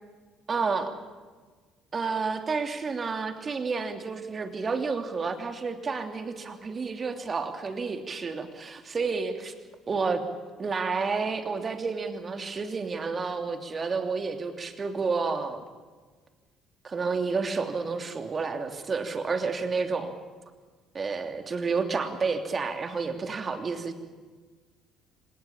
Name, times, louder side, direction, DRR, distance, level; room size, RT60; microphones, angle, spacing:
voice 1, 0.5-0.9 1.9-9.5 9.9-10.2 10.6-15.6 16.8-20.2 20.9-24.0, right 4 dB, 35° right, 6 dB, 2.9 m, -30 dB
26.5 x 18.0 x 8.8 m, 1.4 s
figure-of-eight pair, 50°, 0 cm